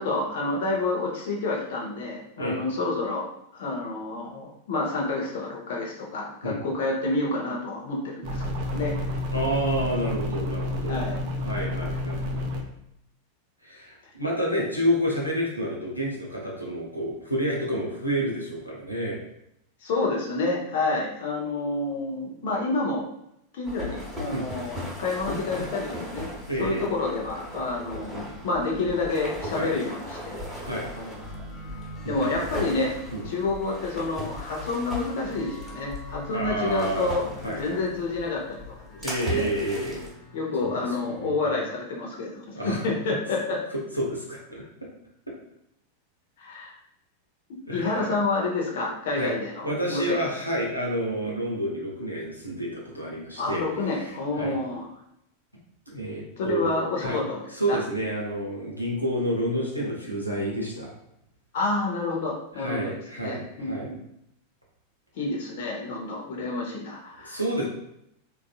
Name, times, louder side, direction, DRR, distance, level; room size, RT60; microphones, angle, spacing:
voice 1, 0.0-9.0 10.9-11.2 19.8-23.0 23.5-26.3 26.6-30.4 31.0-31.2 32.1-32.9 33.2-39.0 39.3-39.5 40.3-43.6 46.4-46.7 47.7-50.2 53.4-54.8 56.4-57.4 57.7-57.8 61.5-64.0 65.1-67.4, left 3 dB, 55° left, -1 dB, 0.7 m, -29 dB
sound 1, 8.2-12.6, left 2 dB, 45° right, 0.5 m, -30 dB
voice 2, 9.3-11.1 11.4-12.4 13.6-19.2 24.3-24.4 26.5-26.9 29.5-29.7 30.6-30.9 32.0-32.4 33.1-33.3 36.3-37.1 37.4-37.8 39.0-40.1 40.6-41.3 42.6-42.8 43.9-44.9 47.7-48.1 49.1-49.3 49.6-53.6 53.9-54.6 55.9-56.7 57.0-57.2 57.6-60.9 62.6-63.9 67.2-67.6, equal, 90° left, -4 dB, 0.7 m, -29 dB
sound 2, 23.6-41.4, equal, 20° left, 1.0 m, -46 dB
sound 3, 23.6-40.1, left 1 dB, 5° right, 1.1 m, -38 dB
3.6 x 2.4 x 2.3 m, 0.78 s
figure-of-eight pair, 90°, 0 cm